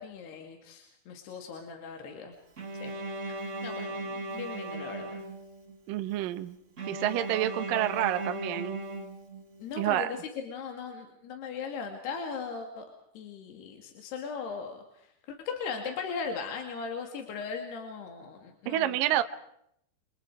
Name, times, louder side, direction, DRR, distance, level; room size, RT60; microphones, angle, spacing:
voice 1, 0.0-2.3 2.8-3.0 3.3-5.3 9.6-12.9 13.2-19.0, left 5 dB, 65° left, 3 dB, 4.4 m, -38 dB
Bowed string instrument, 2.6-5.8 6.8-9.7, right 2 dB, 35° right, 1.1 m, -37 dB
voice 2, 5.9-6.6 6.9-8.8 9.8-10.1 18.7-19.2, right 13 dB, 65° right, 9 dB, 2.4 m, -28 dB
29.5 x 28.0 x 4.9 m, 0.73 s
omnidirectional pair, 5.1 m